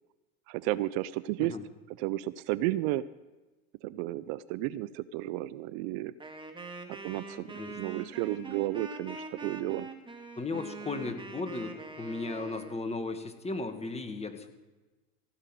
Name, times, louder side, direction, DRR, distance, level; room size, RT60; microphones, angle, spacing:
voice 1, 0.5-1.5 2.0-3.0 3.8-6.1 6.9-9.9, right 16 dB, 60° right, 17 dB, 0.5 m, -33 dB
Wind instrument woodwind instrument, 6.2-12.9, right 3 dB, 15° right, 2.0 m, -44 dB
voice 2, 10.4-14.5, left 3 dB, 15° left, 6 dB, 1.7 m, -36 dB
15.5 x 5.8 x 9.1 m, 1.2 s
hypercardioid pair, 80°, 38 cm